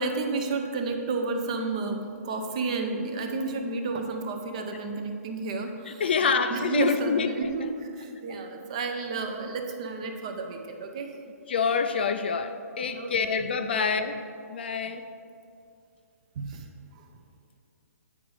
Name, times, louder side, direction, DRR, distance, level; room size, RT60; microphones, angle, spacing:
voice 1, 0.0-6.0 6.5-11.1 12.9-13.4 13.7-14.1 16.4-16.7 16.9-17.1, right 3 dB, 25° right, 4 dB, 0.5 m, -31 dB
voice 2, 5.9-7.3 11.5-14.2 14.5-15.0, left 5 dB, 40° left, 8 dB, 0.3 m, -26 dB
8.6 x 5.0 x 4.7 m, 2.4 s
hypercardioid pair, 180°, 9 cm